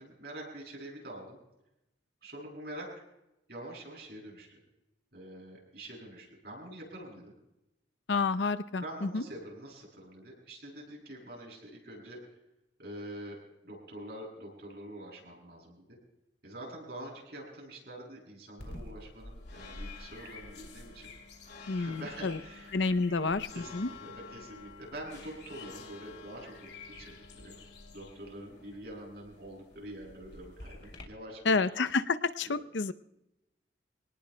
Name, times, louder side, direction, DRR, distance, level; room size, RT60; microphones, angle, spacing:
voice 1, 0.0-1.4 2.2-2.9 3.5-4.6 5.1-7.3 8.8-12.2 12.8-16.0 16.4-21.1 21.4-21.5 21.8-22.7 23.5-27.5 27.9-31.7 32.5-32.6, right 1 dB, 60° right, -2 dB, 7.6 m, -46 dB
voice 2, 8.1-9.2 21.7-22.4 22.7-23.5 23.7-23.9 31.5-32.9, left 4 dB, 85° left, 13 dB, 0.7 m, -29 dB
sound 1, 18.6-31.0, left 3 dB, 65° left, 2.8 m, -48 dB
25.5 x 18.5 x 2.2 m, 0.92 s
head